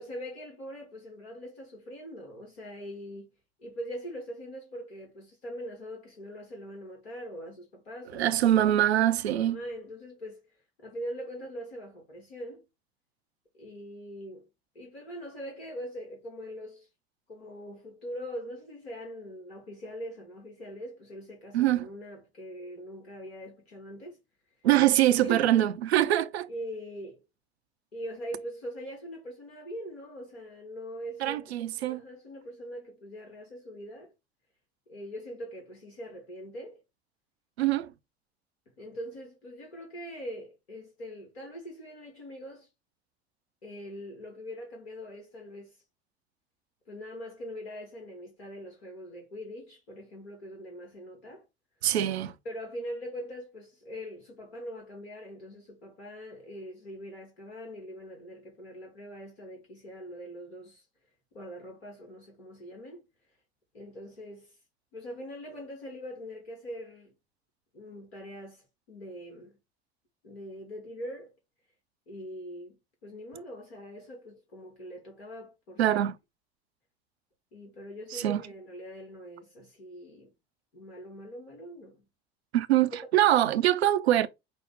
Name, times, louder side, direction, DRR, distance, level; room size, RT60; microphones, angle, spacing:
voice 1, 0.0-3.3 3.6-8.3 9.3-10.4 10.8-12.7 13.5-14.5 14.7-16.9 17.3-24.2 25.1-25.5 26.5-27.2 27.9-34.1 34.9-36.8 38.8-42.7 43.6-45.8 46.9-51.4 52.4-60.9 61.3-63.0 63.7-64.6 64.9-67.1 67.7-69.6 70.2-71.3 72.1-75.8 77.5-80.3 80.7-82.0 82.9-83.1, equal, 85° left, 1.3 m, -42 dB
voice 2, 8.1-9.6 21.5-21.9 24.6-26.5 31.2-32.0 37.6-37.9 51.8-52.3 75.8-76.2 78.1-78.4 82.5-84.3, right 12 dB, 85° right, 0.5 m, -24 dB
5.9 x 2.0 x 3.5 m
hypercardioid pair, 65°, 31 cm